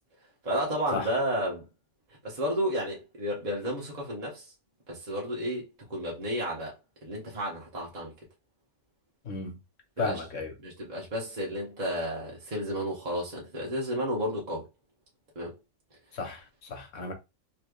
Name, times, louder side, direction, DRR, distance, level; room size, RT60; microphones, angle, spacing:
voice 1, 0.4-1.6 2.2-4.4 4.9-6.7 7.0-8.1 10.0-10.2 10.6-14.7 15.3-15.6, equal, 35° right, 1.2 m, -32 dB
voice 2, 9.2-9.6 10.0-10.5 16.1-17.1, left 3 dB, 75° left, 1.3 m, -33 dB
3.4 x 3.4 x 2.3 m
omnidirectional pair, 1.3 m